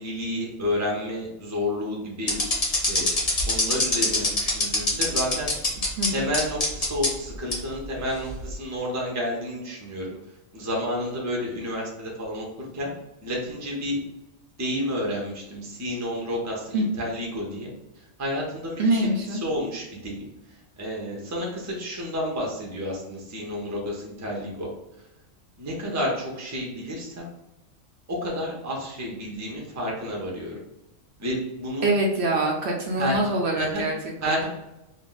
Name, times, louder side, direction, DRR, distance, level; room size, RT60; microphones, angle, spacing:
voice 1, 0.0-2.4 2.7-3.1 3.4-5.5 6.1-10.1 10.5-12.9 13.2-14.0 14.6-24.7 25.6-27.2 28.1-30.5 31.2-31.9 33.0-33.2 33.6-33.8 34.2-34.5, equal, 20° right, -2 dB, 0.5 m, -30 dB
sound 1, 2.3-6.1 6.3-7.1 7.5-7.6 8.3-8.5, left 2 dB, 35° left, 0.7 m, -23 dB
voice 2, 6.0-6.3 16.7-16.9 18.8-19.4 31.8-34.4, right 1 dB, 65° right, 0 dB, 0.8 m, -24 dB
2.6 x 2.1 x 3.8 m, 0.93 s
omnidirectional pair, 1.3 m